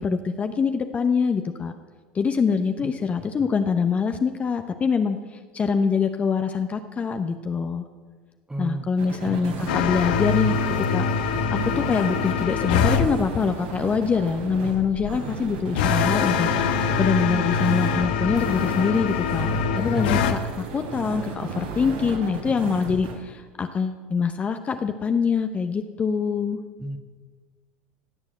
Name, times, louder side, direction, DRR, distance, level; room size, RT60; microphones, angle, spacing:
voice 1, 0.0-1.7 2.1-7.8 8.6-10.6 10.9-16.5 17.0-19.5 19.7-26.6, left 5 dB, 30° left, 7 dB, 0.8 m, -24 dB
voice 2, 8.5-8.9 9.2-9.4 19.9-20.2 26.8-27.0, right 2 dB, 10° right, 7 dB, 1.5 m, -32 dB
sound 1, 9.0-23.1, right 4 dB, 80° right, 3.4 m, -34 dB
sound 2, 9.7-13.1 15.7-20.3, left 6 dB, 80° left, 1.1 m, -24 dB
17.5 x 7.2 x 7.8 m, 1.4 s
supercardioid pair, 95°, 5 cm